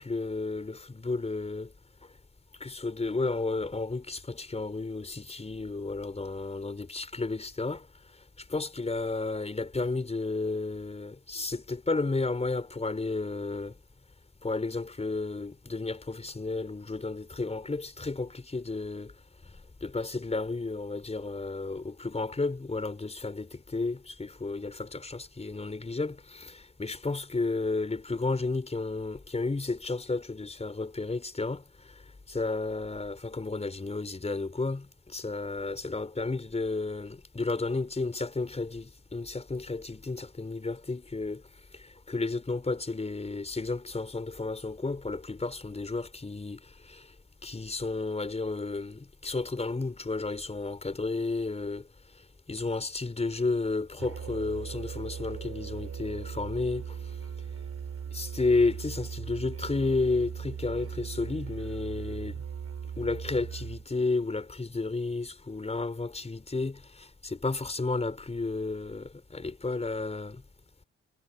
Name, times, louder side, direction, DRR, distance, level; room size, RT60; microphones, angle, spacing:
voice 1, 0.0-1.7 2.6-7.9 8.5-13.8 14.4-19.1 19.8-32.0 32.3-41.4 41.7-47.1 47.4-51.9 52.5-57.0 58.1-62.4 63.0-70.4, left 3 dB, 20° left, 5.5 m, -32 dB
Musical instrument, 54.0-63.9, right 7 dB, 55° right, 6.6 m, -39 dB
cardioid pair, 90°, 30 cm